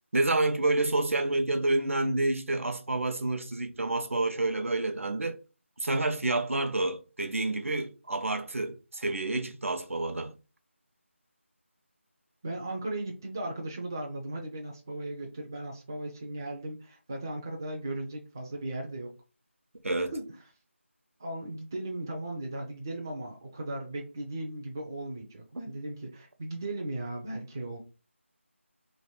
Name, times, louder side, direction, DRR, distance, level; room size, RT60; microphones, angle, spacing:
voice 1, 0.1-5.4 5.8-10.3 19.8-20.1, right 2 dB, 75° right, 0.8 m, -28 dB
voice 2, 12.4-19.1 20.1-20.2 21.2-27.8, right 1 dB, 15° right, 0.4 m, -37 dB
3.2 x 2.9 x 4.2 m
figure-of-eight pair, 170°, 7 cm